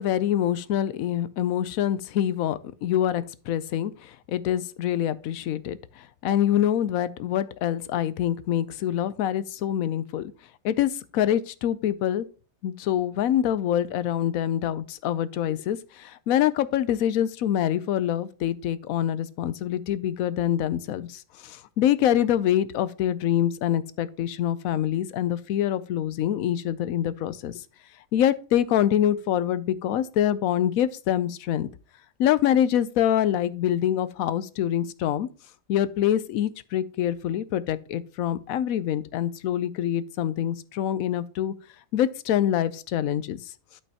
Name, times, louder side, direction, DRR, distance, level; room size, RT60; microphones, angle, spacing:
voice 1, 0.0-10.3 10.6-12.3 12.6-27.6 28.1-31.7 32.2-35.3 35.7-41.5 41.9-43.4, left 11 dB, 90° left, 1.0 m, -25 dB
12.0 x 5.3 x 2.8 m
omnidirectional pair, 1.4 m